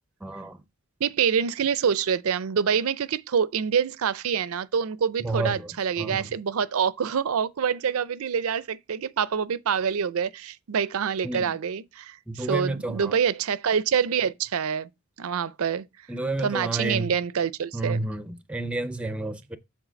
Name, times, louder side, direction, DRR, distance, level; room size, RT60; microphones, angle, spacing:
voice 1, 0.2-0.6 5.2-5.7 6.0-6.3 11.2-11.5 12.3-13.2 16.1-17.1 17.7-19.6, right 2 dB, 5° right, 0.5 m, -30 dB
voice 2, 1.0-14.9 15.2-15.8 16.4-18.0, right 7 dB, 70° right, 0.4 m, -26 dB
7.3 x 3.7 x 5.1 m
head